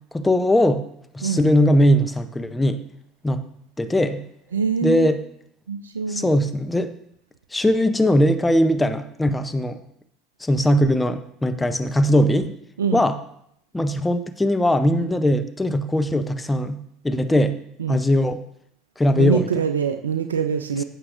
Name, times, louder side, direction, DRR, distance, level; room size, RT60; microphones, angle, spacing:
voice 1, 0.1-0.8 1.1-2.8 3.2-3.4 3.8-4.2 4.8-5.2 6.1-6.9 7.5-9.8 10.4-12.5 12.9-13.2 13.7-17.6 17.9-18.4 19.0-19.5, left 1 dB, 10° left, 9 dB, 0.8 m, -20 dB
voice 2, 1.2-1.5 4.5-5.1 5.7-6.3 12.8-13.1 17.8-18.0 19.1-20.8, right 7 dB, 85° right, 8 dB, 0.4 m, -24 dB
15.5 x 6.3 x 2.6 m, 0.71 s
hypercardioid pair, 70°, 0 cm